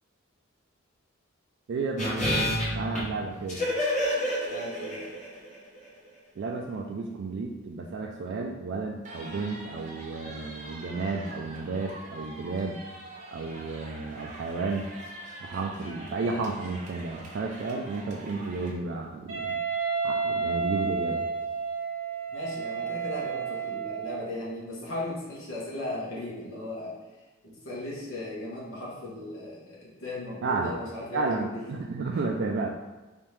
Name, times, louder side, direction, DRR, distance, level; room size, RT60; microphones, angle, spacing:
voice 1, 1.7-3.6 6.4-12.8 13.3-14.9 15.4-19.6 20.0-21.3 30.4-30.8 31.1-32.7, right 3 dB, 55° right, 1 dB, 0.3 m, -32 dB
sound 1, 2.0-5.5 5.8-5.9, left 1 dB, 35° left, 1.0 m, -29 dB
voice 2, 4.5-5.1 22.3-27.0 27.4-31.6, left 1 dB, 80° left, -6 dB, 1.2 m, -37 dB
sound 2, 9.0-18.7, right 1 dB, 40° right, 0.7 m, -44 dB
Wind instrument woodwind instrument, 19.3-24.3, right 5 dB, 75° right, 0.8 m, -31 dB
3.5 x 3.0 x 3.2 m, 1.2 s
head